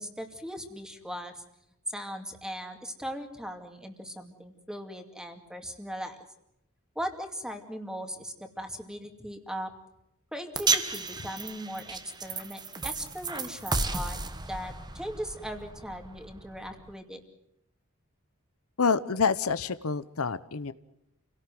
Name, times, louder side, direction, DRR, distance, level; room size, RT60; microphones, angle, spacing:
voice 1, 0.0-1.4 1.9-6.2 7.0-9.7 10.3-14.2 14.5-17.2, equal, 5° right, 5 dB, 2.5 m, -39 dB
sound 1, 10.5-16.9, right 4 dB, 20° right, 1.4 m, -33 dB
voice 2, 18.8-20.7, left 5 dB, 80° left, 14 dB, 0.9 m, -27 dB
28.5 x 18.0 x 7.7 m, 0.81 s
head